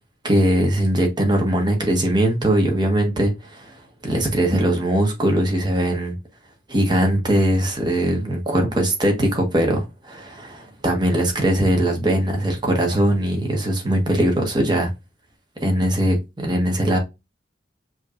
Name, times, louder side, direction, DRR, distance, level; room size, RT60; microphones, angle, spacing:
voice 1, 0.2-3.8 4.0-6.1 6.7-14.9 15.6-17.0, right 1 dB, 25° right, 1.3 m, -20 dB
5.6 x 3.0 x 2.4 m
head